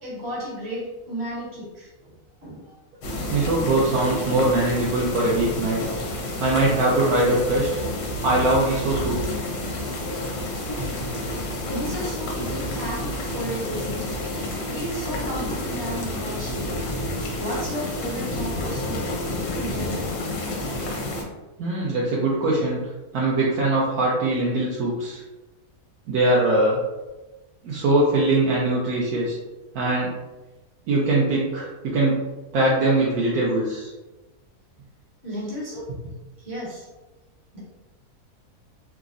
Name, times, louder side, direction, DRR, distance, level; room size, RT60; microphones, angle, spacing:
voice 1, 0.0-2.8 11.7-14.0 14.7-16.7 17.4-19.0 19.5-20.2 35.2-35.9 36.4-36.9 37.5-37.6, equal, 45° right, -7 dB, 1.4 m, -33 dB
sound 1, 3.0-21.2, left 1 dB, 85° left, 1.2 m, -29 dB
voice 2, 3.3-5.8 6.4-7.8 8.2-9.2 21.6-22.8 23.1-25.2 26.1-26.8 27.6-29.4 29.7-30.1 30.9-32.2 32.5-33.9, right 2 dB, 75° right, -5 dB, 1.0 m, -22 dB
3.4 x 2.0 x 2.4 m, 1.1 s
omnidirectional pair, 1.6 m